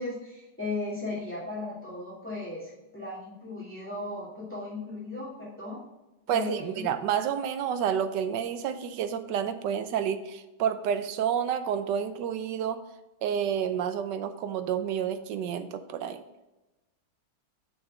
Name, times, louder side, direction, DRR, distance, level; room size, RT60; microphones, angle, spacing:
voice 1, 0.0-5.8 6.3-6.7, left 2 dB, 5° left, -7 dB, 2.5 m, -36 dB
voice 2, 6.3-12.8 13.2-16.2, right 8 dB, 85° right, 10 dB, 1.3 m, -29 dB
6.5 x 6.0 x 3.7 m, 1.0 s
omnidirectional pair, 1.9 m